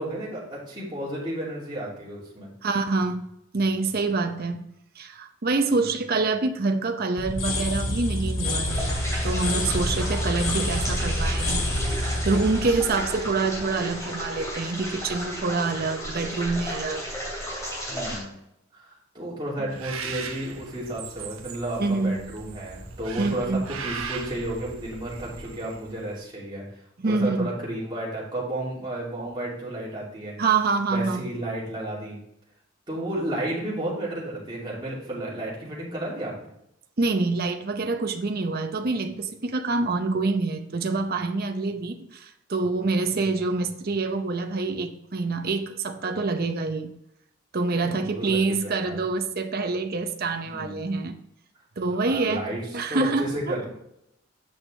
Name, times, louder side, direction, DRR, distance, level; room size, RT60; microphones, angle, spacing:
voice 1, 0.0-2.5 5.7-5.9 17.9-18.3 18.7-26.6 27.0-30.3 30.9-32.2 32.9-36.5 41.7-41.8 43.1-43.4 47.8-49.0 50.5-50.8 51.9-53.7, right 1 dB, 20° right, -6 dB, 2.6 m, -32 dB
voice 2, 2.6-3.3 3.5-4.7 5.0-8.9 9.2-11.7 12.2-17.1 19.6-19.7 21.8-22.2 23.2-23.7 27.0-27.5 30.4-31.3 37.0-46.9 47.5-51.2 51.8-52.4 52.7-53.6, right 3 dB, 45° right, 6 dB, 0.7 m, -26 dB
sound 1, 7.2-14.0, left 1 dB, 75° left, 1.8 m, -28 dB
sound 2, 8.7-18.2, equal, 15° left, 2.8 m, -33 dB
Bird, 19.7-26.1, right 5 dB, 85° right, 0.9 m, -38 dB
8.4 x 6.4 x 3.3 m, 0.81 s
head